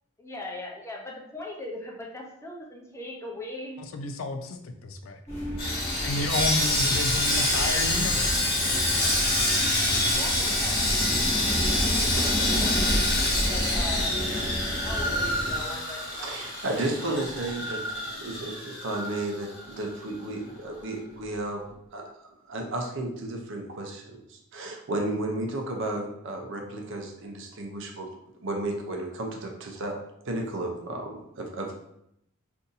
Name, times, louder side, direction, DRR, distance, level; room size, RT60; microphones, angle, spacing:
voice 1, 0.2-3.8 7.3-7.6 9.0-9.2 10.1-13.0 13.5-14.3 14.8-16.3, left 2 dB, 15° left, -1 dB, 0.6 m, -40 dB
voice 2, 3.8-5.2 6.0-8.5, left 2 dB, 75° left, 6 dB, 0.4 m, -31 dB
sound 1, 5.3-15.6, equal, 30° left, 1.2 m, -32 dB
Sawing, 5.6-19.8 20.1-20.3 20.7-20.9, left 1 dB, 50° left, 1.0 m, -26 dB
voice 3, 16.1-17.8 18.2-21.6 21.9-28.1 28.4-30.0 30.3-31.7, right 2 dB, 65° right, 2 dB, 0.6 m, -33 dB
2.6 x 2.6 x 3.8 m, 0.77 s
head